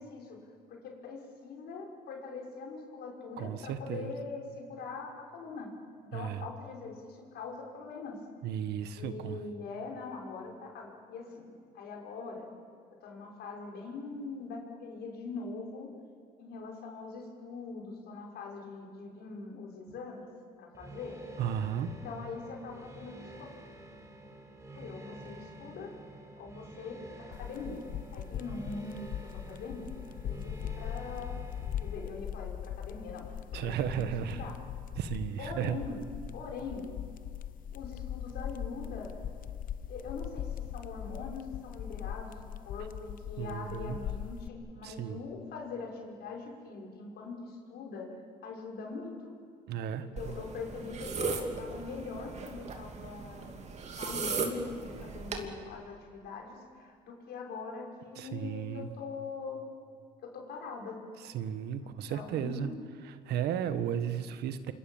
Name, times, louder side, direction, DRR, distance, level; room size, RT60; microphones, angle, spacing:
voice 1, 0.0-5.7 6.0-8.2 8.9-12.5 13.0-15.9 16.4-20.3 20.6-21.2 21.9-23.5 24.7-26.0 26.4-27.9 28.1-29.8 30.2-31.4 31.8-34.6 35.4-36.9 37.7-39.1 39.9-48.1 48.4-49.4 50.0-53.6 53.9-59.6 60.2-61.0 61.8-62.8, left 4 dB, 70° left, 0 dB, 6.2 m, -42 dB
voice 2, 3.4-4.1 6.1-6.4 8.4-9.4 21.4-21.9 33.5-34.4 35.0-35.8 43.4-44.0 44.8-45.2 49.7-50.1 58.2-58.9 61.2-62.7 63.2-64.7, right 9 dB, 75° right, 11 dB, 1.6 m, -34 dB
sound 1, 20.7-32.1, right 1 dB, 15° right, 5.7 m, -49 dB
sound 2, 27.3-44.5, left 10 dB, 55° left, 0.9 m, -40 dB
sound 3, 50.2-55.5, right 4 dB, 40° right, 2.9 m, -37 dB
28.0 x 26.5 x 7.4 m, 2.1 s
cardioid pair, 110°, 17 cm